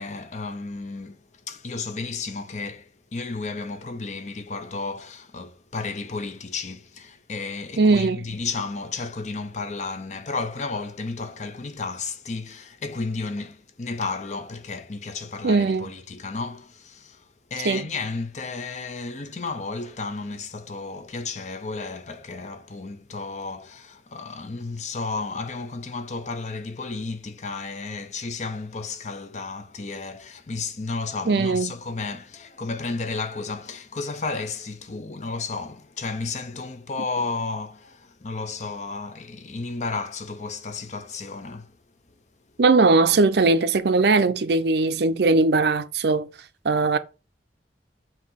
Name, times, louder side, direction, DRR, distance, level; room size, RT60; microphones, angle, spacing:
voice 1, 0.0-41.8, left 4 dB, 40° left, 0.6 m, -33 dB
voice 2, 7.8-8.3 15.4-15.9 17.6-17.9 31.3-31.7 42.6-46.3 46.6-47.0, right 3 dB, 65° right, 0.6 m, -20 dB
7.3 x 2.8 x 5.6 m
head